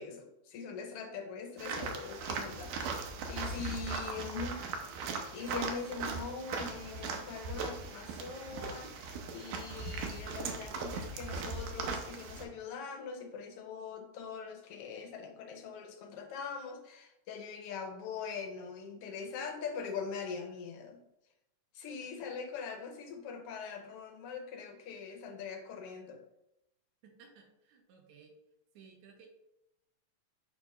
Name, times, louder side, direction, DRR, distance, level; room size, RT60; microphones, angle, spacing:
voice 1, 0.0-2.9 3.3-4.6 5.3-21.0 21.7-26.2, left 5 dB, 80° left, 3 dB, 1.3 m, -42 dB
sound 1, 1.6-12.4, right 4 dB, 85° right, 2.3 m, -39 dB
voice 2, 27.0-28.3 28.7-29.3, right 6 dB, 70° right, 2 dB, 2.2 m, -58 dB
6.6 x 2.9 x 5.6 m, 0.87 s
omnidirectional pair, 3.6 m